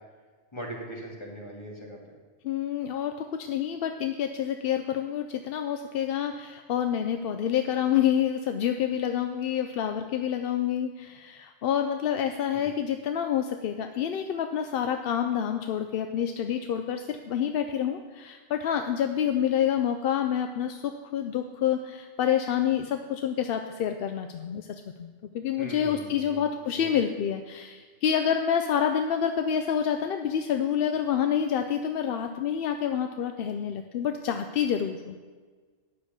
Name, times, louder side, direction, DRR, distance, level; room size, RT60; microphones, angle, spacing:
voice 1, 0.5-2.1 12.5-12.7 25.6-26.4 26.7-27.0, right 1 dB, 25° left, -3 dB, 2.2 m, -40 dB
voice 2, 2.4-35.2, left 9 dB, 65° left, 7 dB, 0.7 m, -28 dB
9.6 x 6.6 x 6.7 m, 1.5 s
omnidirectional pair, 1.2 m